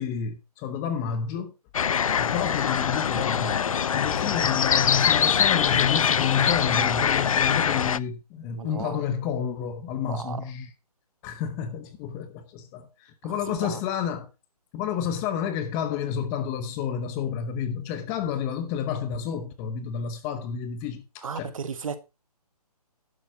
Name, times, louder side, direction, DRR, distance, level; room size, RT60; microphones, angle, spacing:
voice 1, 0.0-1.5 2.2-10.7 11.2-14.3 14.7-21.5, left 8 dB, 15° left, 0.8 m, -30 dB
sound 1, 1.7-8.0, left 7 dB, 60° left, 0.5 m, -23 dB
voice 2, 8.6-9.0 10.1-10.4 13.2-13.8 21.2-22.0, right 6 dB, 55° right, 1.7 m, -35 dB
11.5 x 8.4 x 4.4 m
hypercardioid pair, 160°, 20 cm